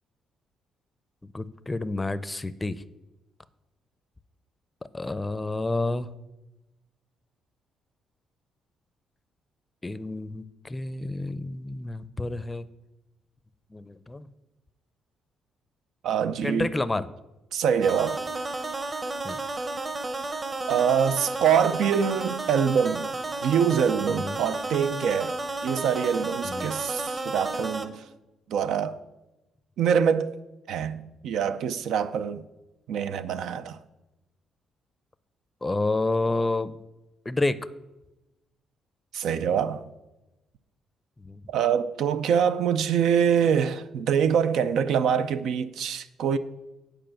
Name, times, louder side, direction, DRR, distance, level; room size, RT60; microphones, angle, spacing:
voice 1, 1.2-2.8 4.9-6.1 9.8-12.7 13.7-14.3 16.2-17.1 19.2-19.4 24.1-24.4 26.4-26.7 35.6-36.8 37.3-37.7 41.2-41.4, left 2 dB, 15° left, 0.5 m, -29 dB
voice 2, 16.0-16.7 17.5-18.2 20.7-23.1 23.4-25.4 25.6-28.0 28.5-29.0 29.8-30.3 30.7-32.4 32.9-33.8 39.1-39.8 41.5-46.4, right 7 dB, 80° right, 0.5 m, -24 dB
sound 1, 17.8-27.9, right 2 dB, 35° right, 1.0 m, -32 dB
9.1 x 4.9 x 7.6 m
cardioid pair, 90°, 0 cm